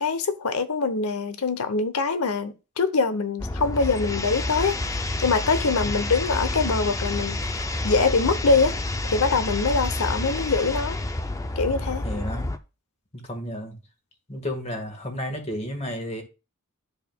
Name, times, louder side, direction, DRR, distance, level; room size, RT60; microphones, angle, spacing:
voice 1, 0.0-4.8 5.2-8.8 9.0-11.0 11.6-12.1, left 4 dB, 75° left, 0.9 m, -24 dB
sound 1, 3.4-12.6, left 2 dB, 15° left, 0.5 m, -29 dB
voice 2, 12.0-12.5 13.3-13.7 14.3-16.2, equal, 30° left, 1.7 m, -32 dB
12.0 x 4.9 x 2.3 m
head